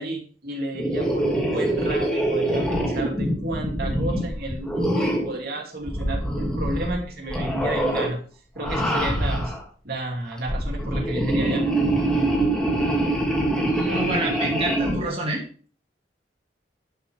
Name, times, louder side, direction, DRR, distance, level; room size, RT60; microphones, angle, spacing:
voice 1, 0.0-8.2 8.5-9.5 9.8-11.7, right 2 dB, 55° right, 1 dB, 2.9 m, -31 dB
sound 1, 0.7-5.4 5.8-7.0 7.3-8.1 8.6-9.6 10.3-15.0, right 1 dB, 5° left, 2.7 m, -24 dB
voice 2, 13.6-15.4, right 2 dB, 30° right, -2 dB, 2.3 m, -28 dB
11.5 x 9.2 x 3.6 m, 0.40 s
head